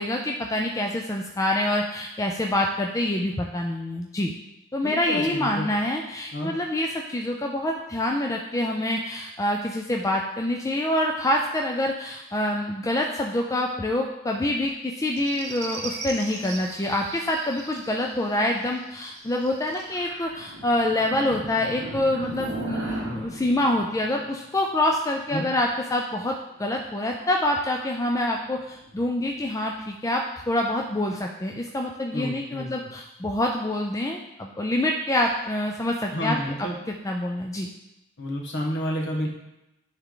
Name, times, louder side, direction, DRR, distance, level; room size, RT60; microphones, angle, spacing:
voice 1, 0.0-4.3 4.7-36.7 37.0-37.7, left 1 dB, 15° left, 1 dB, 0.3 m, -26 dB
voice 2, 4.8-5.7 6.3-6.5 25.3-25.5 32.1-32.9 36.1-36.8 38.2-39.3, equal, 55° left, -1 dB, 1.4 m, -30 dB
sound 1, 15.1-24.9 26.6-27.5 28.5-29.6, right 2 dB, 55° right, 1.2 m, -39 dB
10.0 x 3.5 x 3.8 m, 0.93 s
head